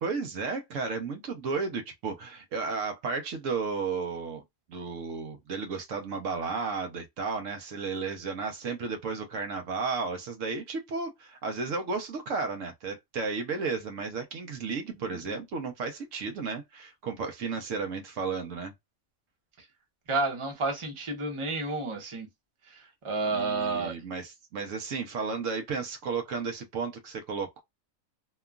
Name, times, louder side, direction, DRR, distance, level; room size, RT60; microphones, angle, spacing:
voice 1, 0.0-4.4 4.7-18.7 23.3-27.6, right 4 dB, 70° right, 1.0 m, -33 dB
voice 2, 20.1-22.3 22.7-23.9, right 3 dB, 25° right, 0.8 m, -31 dB
2.9 x 2.3 x 2.3 m
omnidirectional pair, 1.4 m